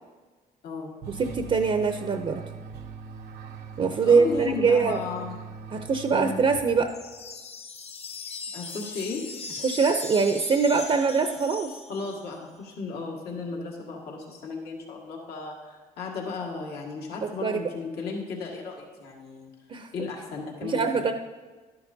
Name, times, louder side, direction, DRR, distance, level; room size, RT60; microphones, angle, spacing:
voice 1, 0.6-0.9 4.0-5.4 6.1-6.4 8.5-9.2 11.9-19.5 19.9-21.0, left 4 dB, 75° left, -2 dB, 1.7 m, -35 dB
sound 1, 1.0-7.1, right 5 dB, 85° right, 0.8 m, -41 dB
voice 2, 1.2-2.4 3.8-5.0 5.7-6.9 9.6-11.7 17.4-17.6 19.7-19.9 20.6-21.1, right 5 dB, 40° right, 7 dB, 0.6 m, -23 dB
sound 2, 6.9-12.4, left 4 dB, 40° left, 0.9 m, -39 dB
12.0 x 10.5 x 2.7 m, 1.4 s
cardioid pair, 80°, 16 cm